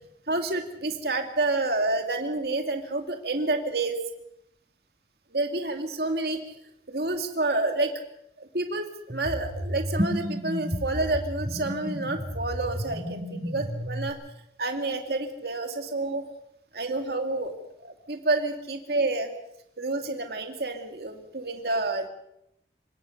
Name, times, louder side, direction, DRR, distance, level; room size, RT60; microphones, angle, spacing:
voice 1, 0.3-4.0 5.3-6.4 6.9-7.9 8.4-14.2 14.6-16.2 16.7-17.5 17.8-19.3 19.8-22.1, right 2 dB, 60° right, 4 dB, 2.3 m, -29 dB
sound 1, 9.1-14.1, equal, 25° right, 6.0 m, -32 dB
27.0 x 17.5 x 6.5 m, 0.81 s
head